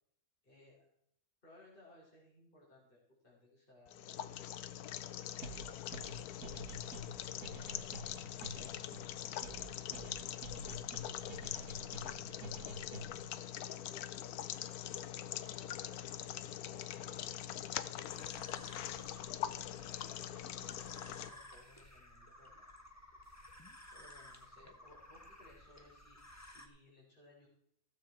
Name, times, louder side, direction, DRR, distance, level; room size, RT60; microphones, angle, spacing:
voice 1, 0.4-0.9 1.4-4.4 5.2-10.4 11.2-13.4 13.8-16.1 16.8-17.4 17.8-18.6 19.4-20.2 21.0-22.7 23.9-27.5, left 1 dB, 35° left, -5 dB, 4.0 m, -63 dB
sound 1, 3.9-21.3, left 11 dB, 80° left, 1.1 m, -43 dB
sound 2, 5.4-13.3, equal, 75° right, 2.1 m, -48 dB
sound 3, 18.1-26.7, left 1 dB, 10° left, 1.0 m, -56 dB
15.5 x 7.5 x 4.4 m, 0.70 s
omnidirectional pair, 1.6 m